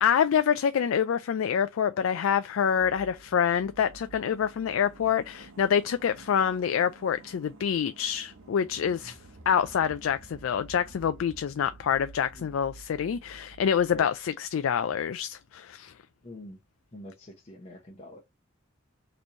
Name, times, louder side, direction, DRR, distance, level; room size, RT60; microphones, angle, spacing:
voice 1, 0.0-9.2 9.5-15.9, left 8 dB, 75° left, 0.3 m, -26 dB
sound 1, 2.8-15.2 15.4-15.5, right 3 dB, 90° right, 0.9 m, -51 dB
voice 2, 16.2-16.6 16.9-18.2, equal, 30° left, 0.9 m, -45 dB
4.2 x 3.1 x 2.6 m
head